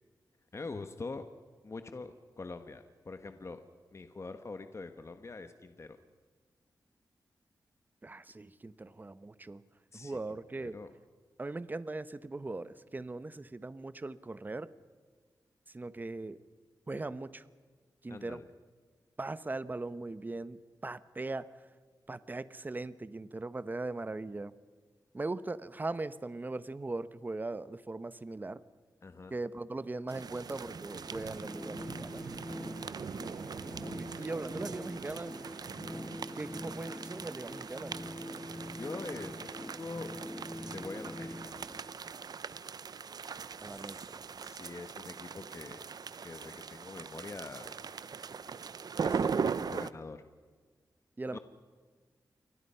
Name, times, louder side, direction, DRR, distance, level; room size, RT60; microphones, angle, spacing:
voice 1, 0.5-1.3 1.6-3.6 3.9-6.0 9.9-10.2 10.6-10.9 18.1-18.5 29.0-29.3 38.8-40.1 40.7-41.7 43.6-44.1 44.4-45.9 46.2-47.7 49.0-50.2 51.3-51.4, left 3 dB, 40° left, 8 dB, 1.3 m, -44 dB
voice 2, 8.0-9.6 9.9-10.8 11.4-14.7 15.7-16.4 16.9-17.5 18.0-18.4 19.2-21.5 22.1-24.5 25.1-28.6 29.3-32.2 34.0-35.3 36.3-38.0 43.6-44.2 51.2-51.4, right 2 dB, 25° right, 15 dB, 0.9 m, -39 dB
sound 1, 30.1-49.9, right 6 dB, 65° right, 0.8 m, -40 dB
sound 2, 30.4-42.4, left 1 dB, 10° left, 1.5 m, -44 dB
29.0 x 23.0 x 5.7 m, 1.5 s
wide cardioid pair, 100°, 7 cm